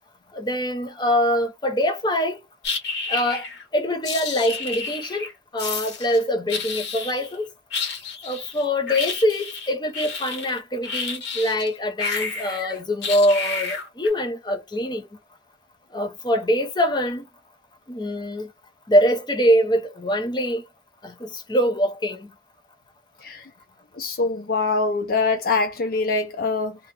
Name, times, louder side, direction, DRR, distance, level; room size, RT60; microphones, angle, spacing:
voice 1, 0.3-2.4 3.1-3.4 3.7-7.5 8.2-15.1 15.9-17.3 17.9-18.5 18.9-20.6 21.0-22.3, equal, 25° left, 0.8 m, -23 dB
sound 1, 2.6-3.6 4.0-5.3 5.6-6.2 6.5-7.4 7.7-11.7 12.0-14.1, left 4 dB, 75° left, 1.2 m, -30 dB
voice 2, 24.0-26.8, left 3 dB, 55° left, 0.4 m, -23 dB
2.8 x 2.3 x 3.4 m
head